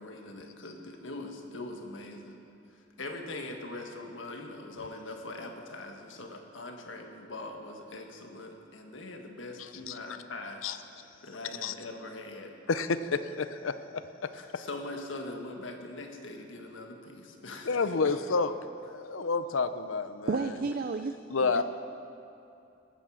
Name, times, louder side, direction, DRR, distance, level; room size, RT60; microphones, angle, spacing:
voice 1, 0.0-2.4 2.7-10.6 11.2-12.5 14.3-18.1, left 2 dB, 70° left, 3 dB, 1.6 m, -42 dB
voice 2, 9.9-10.2 10.6-10.8 11.6-11.7 12.7-13.7 14.2-14.6 17.7-18.5 18.8-20.5 21.3-21.6, left 4 dB, 85° left, 11 dB, 0.6 m, -30 dB
voice 3, 20.3-21.2 21.5-21.6, right 4 dB, 50° right, 9 dB, 0.4 m, -31 dB
19.0 x 9.4 x 6.3 m, 2.7 s
head